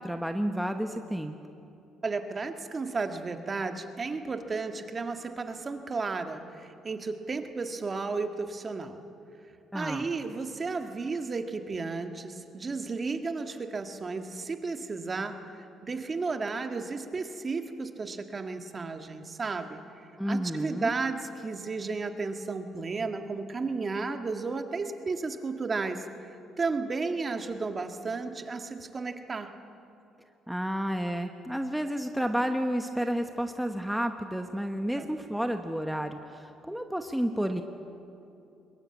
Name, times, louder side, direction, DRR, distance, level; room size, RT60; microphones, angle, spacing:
voice 1, 0.0-1.3 9.7-10.1 20.2-20.9 30.5-37.6, equal, ahead, 5 dB, 1.1 m, -31 dB
voice 2, 2.0-9.0 9.7-15.4 15.8-19.8 20.3-29.5 35.0-35.1, right 4 dB, 30° right, 6 dB, 1.6 m, -33 dB
22.0 x 21.0 x 8.7 m, 2.8 s
cardioid pair, 100°, 0 cm